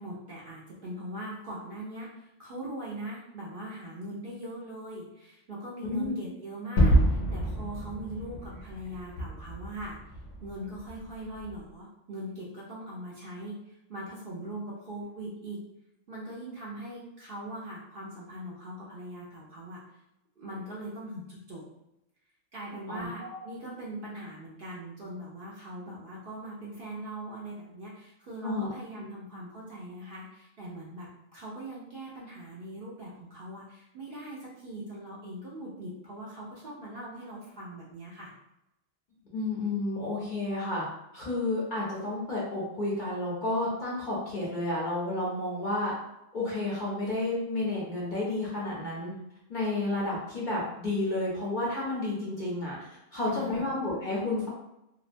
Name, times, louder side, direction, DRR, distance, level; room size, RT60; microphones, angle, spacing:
voice 1, 0.0-10.0 10.4-15.6 16.1-19.8 20.4-21.6 22.5-38.3 53.3-53.7, right 1 dB, 55° right, -6 dB, 0.6 m, -41 dB
voice 2, 5.8-6.1 22.9-23.4 28.4-28.7 39.3-40.8 41.1-45.9 46.3-49.1 49.5-54.5, left 2 dB, 50° left, -6 dB, 0.6 m, -31 dB
Gunshot gunfire / Fireworks / Boom, 6.8-11.6, right 1 dB, 75° left, 1.0 m, -28 dB
2.7 x 2.1 x 2.5 m, 0.87 s
omnidirectional pair, 1.3 m